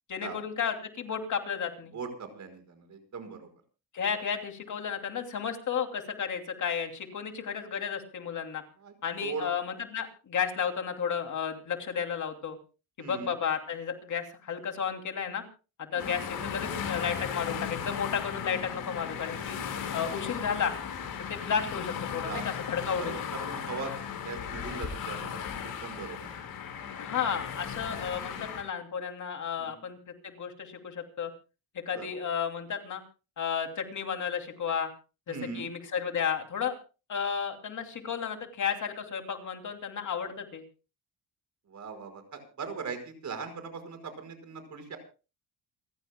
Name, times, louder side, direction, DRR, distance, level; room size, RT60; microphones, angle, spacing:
voice 1, 0.1-1.9 3.9-8.6 9.0-12.6 13.0-15.4 15.8-19.6 19.9-20.7 21.3-23.3 27.0-31.3 31.9-33.0 33.4-34.9 35.3-36.7 37.1-40.6, left 7 dB, 50° left, 5 dB, 2.8 m, -33 dB
voice 2, 1.9-3.5 8.8-8.9 9.2-9.5 13.0-13.3 15.9-16.2 22.2-22.5 23.0-23.9 24.2-26.2 29.6-29.8 31.9-32.1 35.3-35.7 41.7-45.0, right 5 dB, 50° right, 8 dB, 5.3 m, -40 dB
sound 1, 16.0-28.6, left 7 dB, 70° left, 6.0 m, -36 dB
28.5 x 15.5 x 2.2 m, 0.33 s
cardioid pair, 120°, 37 cm